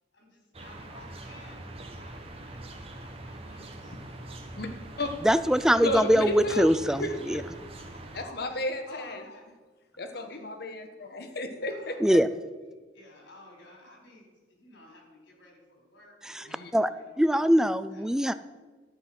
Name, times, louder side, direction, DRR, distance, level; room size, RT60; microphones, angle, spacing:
voice 1, 0.1-1.7 2.0-2.2 2.4-4.0 7.8-8.5 8.9-9.5 10.1-10.4 11.7-12.0 12.9-14.2 14.5-17.4 17.9-18.1, left 1 dB, 75° left, 0 dB, 4.5 m, -53 dB
sound 1, 0.5-8.3, right 1 dB, 30° right, 1.1 m, -43 dB
voice 2, 5.2-7.4 12.0-12.3 16.2-16.9 17.2-18.3, equal, 5° right, 13 dB, 0.3 m, -23 dB
voice 3, 5.8-7.4 8.1-9.2 10.0-12.2 16.4-16.7, left 1 dB, 55° left, 6 dB, 1.2 m, -33 dB
12.5 x 8.1 x 5.8 m, 1.4 s
head